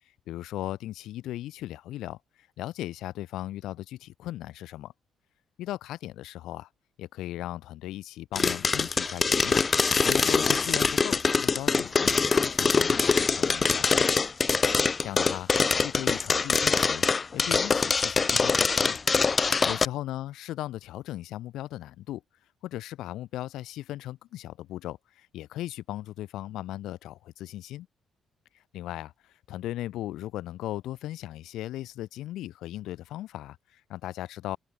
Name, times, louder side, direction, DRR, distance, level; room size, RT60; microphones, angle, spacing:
voice 1, 0.3-4.9 5.6-6.7 7.0-12.1 12.4-13.9 15.0-17.0 17.3-19.0 19.6-22.2 22.6-27.9 28.7-34.6, left 14 dB, 85° left, 3.8 m, -37 dB
sound 1, 8.3-19.8, left 4 dB, 35° left, 1.3 m, -24 dB
open air
cardioid pair, 90°, 0 cm